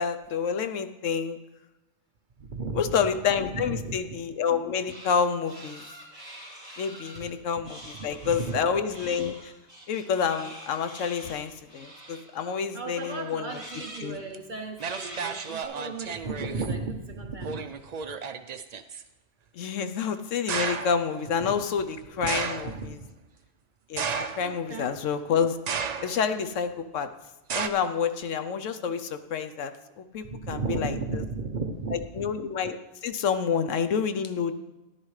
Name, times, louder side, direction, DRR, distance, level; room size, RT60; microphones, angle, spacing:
voice 1, 0.0-1.4 2.7-5.8 6.8-9.5 9.9-13.6 14.0-14.2 19.5-23.0 23.9-24.1 24.4-25.6 26.0-27.1 27.5-31.2 32.1-34.5, left 6 dB, 70° left, 9 dB, 1.0 m, -28 dB
voice 2, 2.4-3.0 3.5-4.0 7.2-7.3 8.2-8.6 12.7-17.7 21.4-21.5 22.2-22.3 22.6-23.0 24.4-25.0 30.2-32.0, right 4 dB, 45° right, 4 dB, 0.8 m, -34 dB
sound 1, 4.9-5.2 5.4-7.2 7.6-8.6 8.9-12.5 12.9-14.1 14.8-15.7, equal, 25° right, 3.6 m, -45 dB
sound 2, 14.3-14.4 14.8-16.7 17.4-19.0 20.5-21.0 22.3-22.8 24.0-24.7 25.7-26.3 27.5-27.7, right 6 dB, 80° right, 0.3 m, -32 dB
14.0 x 11.0 x 3.2 m, 1.0 s
omnidirectional pair, 1.4 m